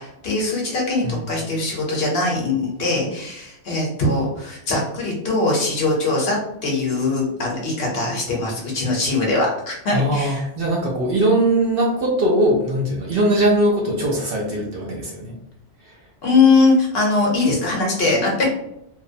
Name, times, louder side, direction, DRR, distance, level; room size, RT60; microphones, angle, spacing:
voice 1, 0.0-10.4 16.2-18.4, left 3 dB, 60° left, -2 dB, 0.9 m, -21 dB
voice 2, 9.9-15.3 15.8-16.0, right 1 dB, 60° right, -2 dB, 0.7 m, -20 dB
2.7 x 2.0 x 2.5 m, 0.79 s
omnidirectional pair, 1.2 m